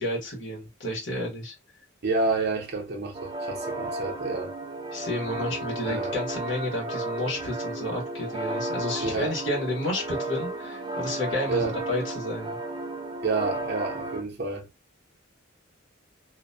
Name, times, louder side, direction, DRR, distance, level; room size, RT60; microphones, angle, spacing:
voice 1, 0.0-1.5 4.9-12.6, left 1 dB, 65° left, 1.2 m, -31 dB
voice 2, 2.0-4.5 5.8-6.1 9.0-9.4 11.5-11.8 13.2-14.7, right 3 dB, 50° right, 0.7 m, -29 dB
sound 1, 3.1-14.2, right 2 dB, 20° right, 0.3 m, -33 dB
2.5 x 2.2 x 2.5 m
head